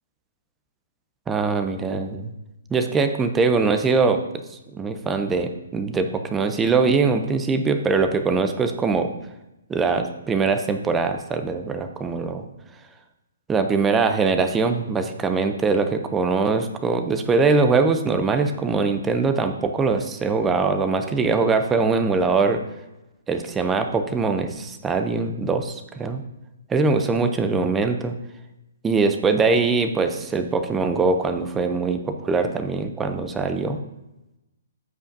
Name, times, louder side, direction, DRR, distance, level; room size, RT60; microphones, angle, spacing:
voice 1, 1.3-2.3 2.7-4.2 4.5-9.1 9.7-12.5 13.5-22.6 23.3-26.2 26.7-28.1 28.8-33.8, right 4 dB, 5° right, 7 dB, 0.4 m, -22 dB
13.5 x 5.0 x 2.6 m, 0.95 s
hypercardioid pair, 175°, 0 cm